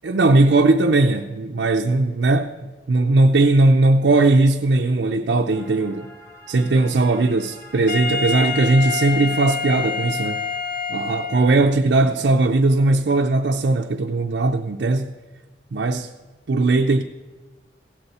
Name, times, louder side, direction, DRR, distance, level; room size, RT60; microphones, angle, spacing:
voice 1, 0.0-6.1 6.5-10.4 10.9-15.1 15.7-16.1 16.5-17.0, right 2 dB, 65° right, 0.5 m, -18 dB
sound 1, 5.5-10.8, equal, 15° left, 2.0 m, -46 dB
Wind instrument woodwind instrument, 7.9-11.8, left 5 dB, 55° left, 1.0 m, -27 dB
16.0 x 8.0 x 4.2 m
head